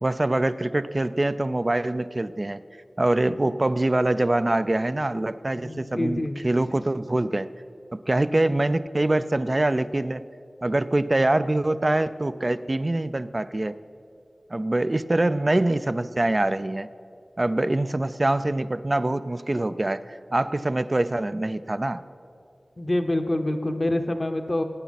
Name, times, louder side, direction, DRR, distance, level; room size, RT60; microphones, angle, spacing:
voice 1, 0.0-2.6 3.0-7.5 7.9-10.2 10.6-13.7 14.5-16.9 17.4-22.0, right 2 dB, 40° right, 13 dB, 0.4 m, -24 dB
voice 2, 5.5-6.4 22.8-24.6, left 1 dB, 40° left, 6 dB, 0.9 m, -26 dB
20.0 x 9.2 x 4.1 m, 2.4 s
wide cardioid pair, 45°, 0 cm